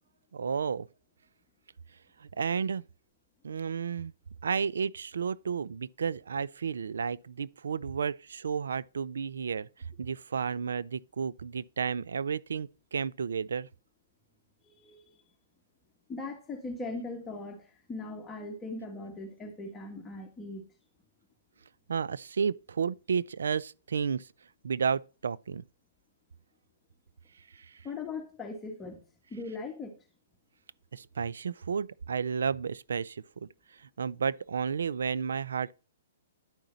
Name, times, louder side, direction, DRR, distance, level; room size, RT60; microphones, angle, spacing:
voice 1, 0.3-0.9 2.2-2.8 3.4-4.1 4.4-9.7 10.0-13.7 21.9-24.3 24.6-25.6 27.5-27.8 30.9-35.7, right 6 dB, 80° right, 0.4 m, -32 dB
voice 2, 14.6-15.1 16.1-20.7 27.8-29.0 29.3-30.0, left 3 dB, 15° left, 1.4 m, -40 dB
10.5 x 4.9 x 3.9 m
hypercardioid pair, 135°, 0 cm